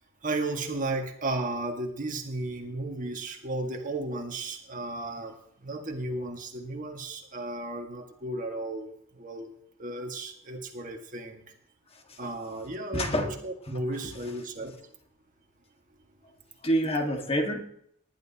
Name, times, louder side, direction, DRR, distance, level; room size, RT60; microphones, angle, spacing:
voice 1, 0.2-5.3 5.6-9.5 9.8-11.4 12.2-14.7, right 2 dB, 40° right, 3 dB, 1.8 m, -34 dB
voice 2, 12.9-13.3 13.9-14.3 16.6-17.6, equal, 30° left, 3 dB, 1.8 m, -28 dB
20.0 x 12.0 x 2.9 m, 0.67 s
head